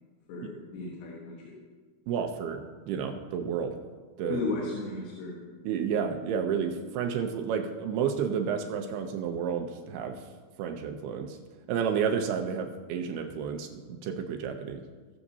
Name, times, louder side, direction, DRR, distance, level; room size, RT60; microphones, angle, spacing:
voice 1, 0.3-1.5 4.3-5.4, left 3 dB, 90° left, -3 dB, 3.4 m, -35 dB
voice 2, 2.1-2.6 2.9-3.7 4.2-4.4 5.6-10.2 10.6-11.4 11.7-14.8, right 7 dB, 80° right, 4 dB, 2.6 m, -31 dB
19.5 x 7.1 x 2.7 m, 1.5 s
omnidirectional pair, 4.6 m